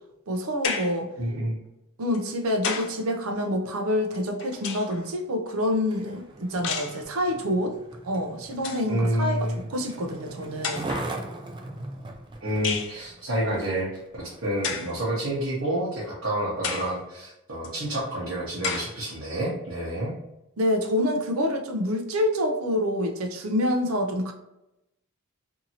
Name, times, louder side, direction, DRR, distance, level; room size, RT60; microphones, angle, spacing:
voice 1, 0.3-1.1 2.0-10.9 20.6-24.3, left 1 dB, 80° right, 4 dB, 0.5 m, -27 dB
sound 1, 0.6-1.1 2.1-3.0 4.1-5.1 6.6-7.0 8.1-8.2 8.5-8.9 9.9-10.0 10.6-11.1 12.6-13.0 14.6-15.0 15.6-15.7 16.6-17.0 17.6-17.7 18.6-19.0, left 6 dB, 60° left, 0.4 m, -31 dB
voice 2, 1.2-1.6 8.9-9.6 12.4-20.1, right 1 dB, 65° right, -7 dB, 0.9 m, -29 dB
Skateboard, 5.8-14.6 15.2-15.3, right 2 dB, 20° right, 0.3 m, -40 dB
2.7 x 2.7 x 2.8 m, 0.90 s
head